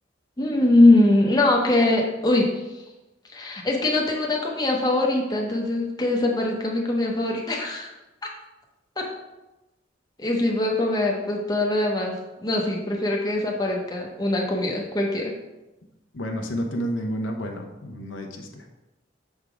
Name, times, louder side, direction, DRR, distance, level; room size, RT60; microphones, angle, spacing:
voice 1, 0.4-2.5 3.3-7.9 9.0-9.1 10.2-12.1 12.4-15.3, left 2 dB, 20° left, -1 dB, 0.9 m, -22 dB
voice 2, 16.1-18.7, equal, 90° left, 3 dB, 0.8 m, -30 dB
6.4 x 3.7 x 4.7 m, 1.0 s
head